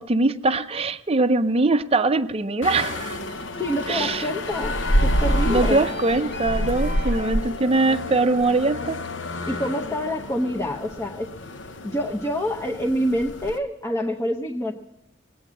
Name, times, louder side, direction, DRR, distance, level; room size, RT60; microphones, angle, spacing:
voice 1, 0.0-3.2 3.9-4.2 5.5-9.0, right 3 dB, 30° right, 0.6 m, -22 dB
sound 1, 2.6-13.6, left 1 dB, 75° left, 0.9 m, -28 dB
sound 2, 3.3-9.4, equal, 60° left, 1.8 m, -39 dB
voice 2, 3.6-5.8 9.5-11.3 11.8-14.7, equal, 15° left, 0.9 m, -27 dB
20.5 x 8.6 x 7.5 m
head